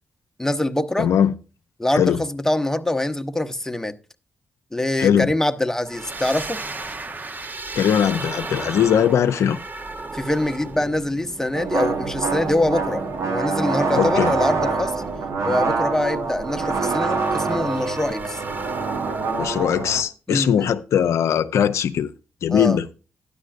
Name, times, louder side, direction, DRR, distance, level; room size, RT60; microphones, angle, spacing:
voice 1, 0.4-1.1 1.8-4.0 4.7-6.6 10.1-15.0 15.4-18.4 20.3-20.7 22.5-22.8, left 1 dB, 10° left, 0.8 m, -24 dB
voice 2, 1.0-1.3 2.0-2.2 5.0-5.3 7.7-9.6 14.0-14.3 19.4-22.1 22.4-22.8, left 9 dB, 75° left, 0.5 m, -20 dB
sound 1, 5.8-20.0, right 3 dB, 35° right, 0.8 m, -36 dB
sound 2, 11.5-20.0, right 4 dB, 75° right, 1.1 m, -25 dB
12.0 x 9.7 x 2.5 m
supercardioid pair, 45°, 5 cm